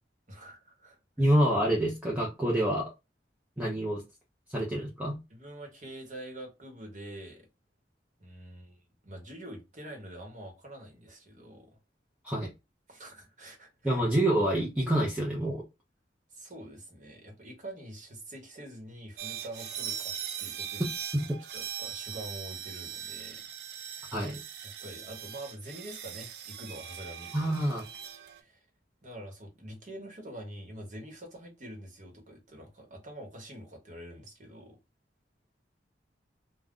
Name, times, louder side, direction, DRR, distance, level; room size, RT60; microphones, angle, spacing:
voice 1, 0.3-1.3 5.3-7.5 8.2-11.8 12.9-14.4 16.3-21.0 21.5-23.4 23.8-24.2 24.6-27.3 28.1-28.6 29.0-34.8, right 1 dB, 45° right, 1.0 m, -46 dB
voice 2, 1.2-2.9 3.6-4.0 4.5-5.1 12.2-12.5 13.8-15.6 21.1-21.2 24.1-24.4 27.3-27.9, right 1 dB, 10° right, 0.6 m, -27 dB
sound 1, 19.2-28.4, right 9 dB, 60° right, 0.4 m, -40 dB
2.4 x 2.1 x 3.6 m
head